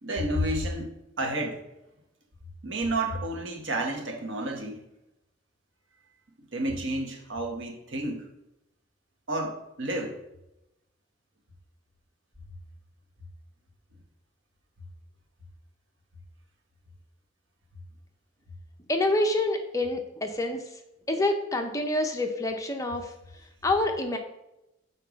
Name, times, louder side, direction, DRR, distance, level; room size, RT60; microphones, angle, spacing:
voice 1, 0.0-0.9 1.2-1.6 2.6-4.8 6.5-8.2 9.3-10.1, right 1 dB, 80° right, 2 dB, 1.4 m, -30 dB
voice 2, 18.9-20.6 21.1-23.1 23.6-24.2, left 2 dB, 15° left, 4 dB, 0.7 m, -27 dB
6.7 x 4.3 x 5.2 m, 0.88 s
head